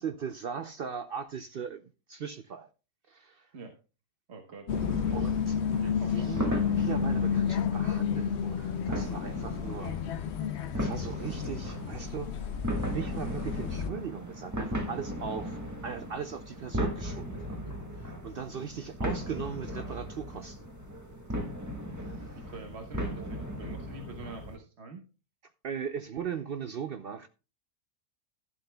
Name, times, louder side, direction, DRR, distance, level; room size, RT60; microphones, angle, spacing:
voice 1, 0.0-2.7 3.1-3.5 5.1-5.6 5.9-10.0 10.7-12.5 12.8-20.7 21.9-22.5 25.6-27.3, right 7 dB, 75° right, 0.5 m, -39 dB
voice 2, 4.3-4.7 5.7-6.3 22.3-25.0, right 3 dB, 45° right, 1.3 m, -45 dB
sound 1, 4.7-13.9, left 7 dB, 60° left, 0.7 m, -31 dB
sound 2, 4.7-24.6, equal, 10° right, 1.6 m, -37 dB
12.5 x 11.5 x 2.2 m
omnidirectional pair, 1.6 m